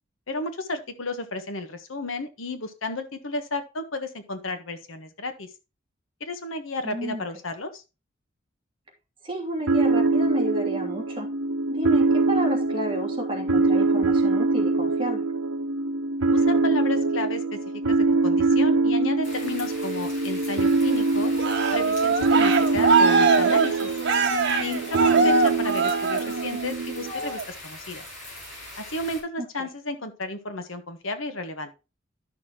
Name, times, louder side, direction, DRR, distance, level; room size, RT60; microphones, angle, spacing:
voice 1, 0.3-5.5 6.2-7.8 16.3-17.6 17.9-21.3 21.7-23.9 24.6-28.0 28.8-31.7, left 2 dB, 80° left, 8 dB, 1.4 m, -33 dB
voice 2, 6.8-7.2 9.2-11.3 11.7-15.2 25.1-25.3 29.4-29.7, equal, 25° right, 0 dB, 2.7 m, -32 dB
sound 1, 9.7-27.1, right 3 dB, 85° right, 1.0 m, -23 dB
sound 2, 19.2-29.2, left 1 dB, 40° left, 5.1 m, -42 dB
Cheering, 21.4-26.6 27.1-27.4, right 3 dB, 60° right, 1.3 m, -23 dB
12.0 x 6.3 x 3.0 m, 0.29 s
head